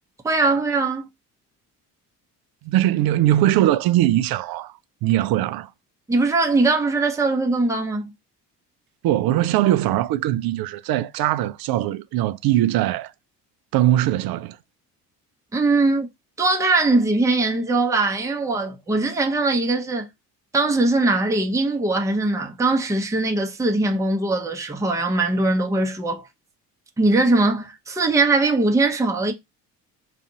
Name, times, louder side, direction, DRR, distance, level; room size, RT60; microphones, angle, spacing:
voice 1, 0.2-1.1 6.1-8.1 15.5-16.1 16.4-20.1 20.5-26.3 27.0-29.3, right 2 dB, 5° right, 0.7 m, -21 dB
voice 2, 2.6-4.7 5.0-5.7 9.0-13.1 13.7-14.6, right 13 dB, 50° right, 0.5 m, -21 dB
2.5 x 2.4 x 2.7 m
hypercardioid pair, 55°, 48 cm